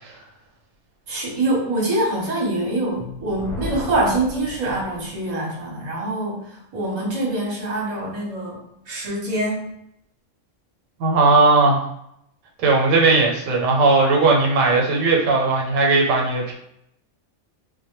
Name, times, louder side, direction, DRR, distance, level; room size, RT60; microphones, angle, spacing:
voice 1, 1.1-9.6, right 1 dB, 40° right, -3 dB, 0.8 m, -25 dB
Thunder, 3.1-5.4, left 1 dB, 45° left, 0.7 m, -35 dB
voice 2, 11.0-11.8 12.6-16.5, right 3 dB, 85° right, 0 dB, 1.0 m, -17 dB
2.1 x 2.1 x 2.9 m, 0.77 s
omnidirectional pair, 1.3 m